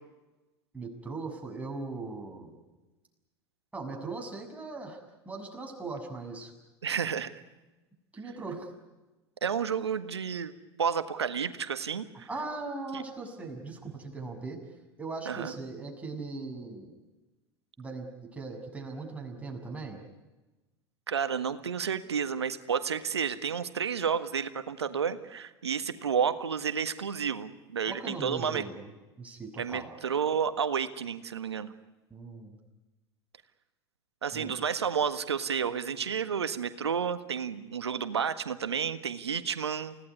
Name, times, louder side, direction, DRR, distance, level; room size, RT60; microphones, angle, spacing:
voice 1, 0.7-2.6 3.7-5.0 5.3-6.5 8.1-8.7 12.3-14.6 15.0-16.9 17.8-18.1 18.3-20.0 27.9-29.9 32.1-32.6 34.3-34.5, right 3 dB, 10° right, 1 dB, 6.8 m, -39 dB
voice 2, 6.8-7.3 9.4-10.5 10.8-12.3 12.9-13.0 15.2-15.5 21.1-28.6 29.6-31.7 34.2-40.0, right 7 dB, 85° right, 11 dB, 1.6 m, -31 dB
29.5 x 17.5 x 9.7 m, 1.1 s
hypercardioid pair, 85°, 14 cm